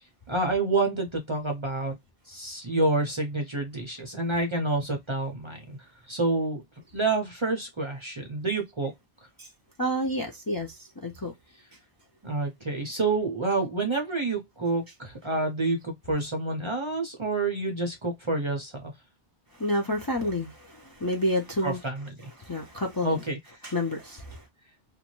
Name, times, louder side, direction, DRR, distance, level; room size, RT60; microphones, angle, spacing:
voice 1, 0.3-2.0 2.3-5.8 6.1-6.6 6.9-8.9 12.2-18.9 21.6-22.1 23.0-23.4, right 2 dB, 35° right, 0.6 m, -28 dB
voice 2, 9.8-10.8 11.0-11.3 19.6-20.5 21.0-21.8 22.5-23.2 23.6-24.4, left 1 dB, 30° left, 0.5 m, -28 dB
2.6 x 2.2 x 2.9 m
omnidirectional pair, 1.0 m